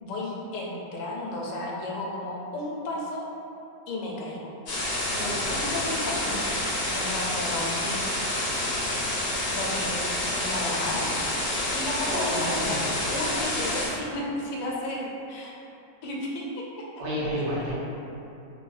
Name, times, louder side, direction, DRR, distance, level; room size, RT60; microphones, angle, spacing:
voice 1, 0.0-3.3 3.9-4.5 5.2-8.0 9.5-11.1 11.7-15.5 16.0-16.9, left 1 dB, 80° left, -3 dB, 1.2 m, -33 dB
sound 1, 4.7-13.9, left 1 dB, 60° left, 0.9 m, -28 dB
voice 2, 5.2-5.5 11.4-11.7 12.0-12.7 17.0-17.7, equal, 75° right, -10 dB, 1.5 m, -31 dB
3.3 x 2.6 x 2.4 m, 2.8 s
omnidirectional pair, 1.8 m